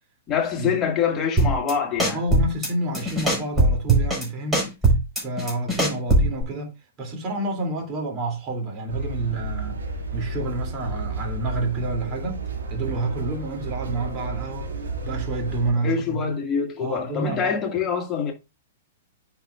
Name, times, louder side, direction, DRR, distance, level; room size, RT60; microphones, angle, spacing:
voice 1, 0.3-2.2 15.8-18.3, left 7 dB, 25° left, 2.2 m, -25 dB
sound 1, 1.4-1.7 2.0-2.7 2.9-4.2 4.5-6.4, right 2 dB, 5° right, 4.7 m, -20 dB
voice 2, 2.1-4.6 5.2-6.7 7.0-9.8 10.1-14.7 15.0-16.3 16.8-17.6, right 2 dB, 35° right, 2.9 m, -29 dB
sound 2, 8.9-15.7, right 3 dB, 75° right, 2.5 m, -32 dB
9.7 x 5.8 x 2.5 m
hypercardioid pair, 115°, 0 cm